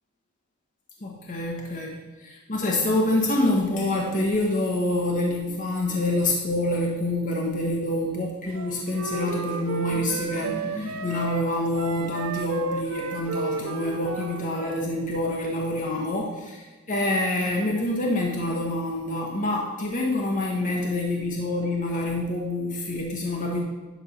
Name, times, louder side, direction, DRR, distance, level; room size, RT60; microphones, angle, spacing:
voice 1, 1.0-1.9 2.2-23.6, left 1 dB, 40° left, -1 dB, 1.3 m, -26 dB
Wind instrument woodwind instrument, 8.5-14.9, right 4 dB, 80° right, 0.7 m, -33 dB
11.0 x 3.7 x 5.9 m, 1.3 s
head